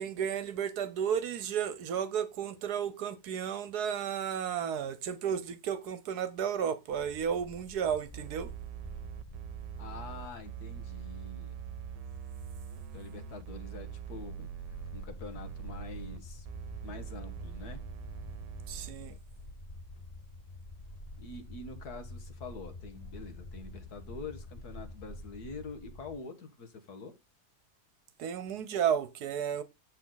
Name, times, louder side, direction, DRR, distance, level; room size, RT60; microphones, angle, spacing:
voice 1, 0.0-8.5 18.7-19.2 28.2-29.6, right 8 dB, 70° right, 1.3 m, -33 dB
sound 1, 6.9-26.2, left 2 dB, 35° left, 0.6 m, -48 dB
sound 2, 8.1-15.1 15.3-16.2 16.4-18.9, right 13 dB, 90° right, 1.3 m, -43 dB
voice 2, 9.8-11.6 12.9-14.5 14.9-16.5 16.8-17.8 21.2-27.1, left 4 dB, 65° left, 2.0 m, -45 dB
8.3 x 7.6 x 3.9 m
omnidirectional pair, 1.8 m